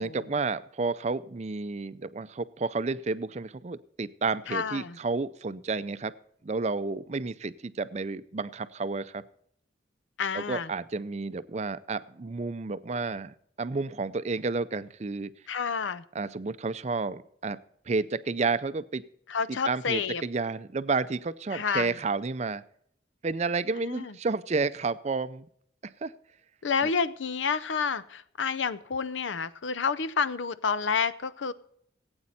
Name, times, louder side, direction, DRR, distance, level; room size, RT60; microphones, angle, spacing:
voice 1, 0.0-6.1 6.4-9.2 10.3-15.3 16.1-17.6 17.9-19.0 19.5-22.6 23.2-25.5 26.0-26.1, right 4 dB, 35° right, 14 dB, 0.5 m, -31 dB
voice 2, 4.5-5.0 10.2-10.7 15.5-16.0 19.3-20.2 21.5-21.9 23.8-24.1 26.6-31.5, left 5 dB, 80° left, 16 dB, 0.6 m, -29 dB
16.5 x 8.7 x 4.2 m, 0.68 s
head